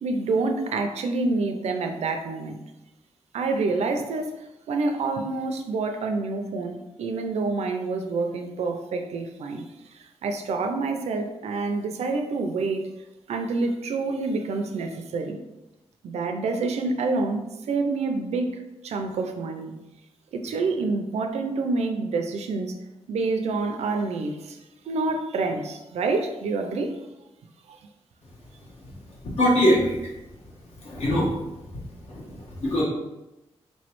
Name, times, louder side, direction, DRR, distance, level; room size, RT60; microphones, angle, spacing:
voice 1, 0.0-2.6 3.3-4.3 4.7-9.6 9.9-12.8 13.3-15.4 16.0-19.7 20.3-22.7 23.1-24.6 24.9-27.0, right 3 dB, 90° right, 5 dB, 0.5 m, -27 dB
voice 2, 29.4-30.0 30.8-31.3 32.1-32.8, equal, 70° left, -5 dB, 1.4 m, -22 dB
4.4 x 3.1 x 3.0 m, 0.98 s
wide cardioid pair, 175°, 11 cm